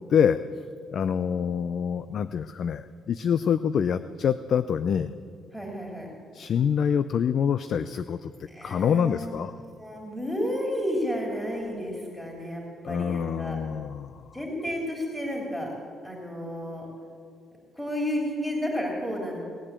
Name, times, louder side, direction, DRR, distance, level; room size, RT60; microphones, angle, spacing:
voice 1, 0.9-5.1 6.3-8.3 8.6-9.5 12.8-14.2, left 7 dB, 60° left, 12 dB, 0.5 m, -26 dB
voice 2, 5.5-6.1 8.5-9.4 9.8-13.6 14.3-15.7 16.0-16.8 17.7-19.4, equal, 5° left, -2 dB, 3.1 m, -31 dB
19.0 x 8.9 x 8.3 m, 2.3 s
cardioid pair, 90°, 0 cm